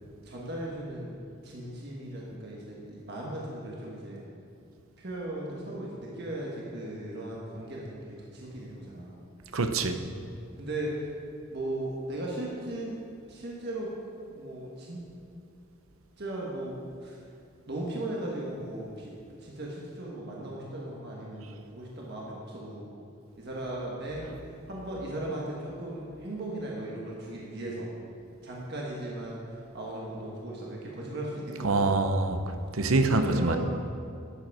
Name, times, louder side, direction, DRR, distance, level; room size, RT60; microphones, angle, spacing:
voice 1, 0.2-1.1 1.4-4.2 5.0-9.2 10.6-11.1 11.5-13.0 13.3-13.9 14.3-15.0 16.2-17.2 17.7-19.1 19.4-22.8 23.4-24.3 24.7-27.9 28.4-31.9 33.1-33.6, right 1 dB, 50° right, -4 dB, 1.5 m, -37 dB
voice 2, 9.5-10.0 31.6-32.4 32.7-33.6, right 3 dB, 80° right, 8 dB, 0.8 m, -25 dB
11.5 x 7.8 x 4.9 m, 2.6 s
head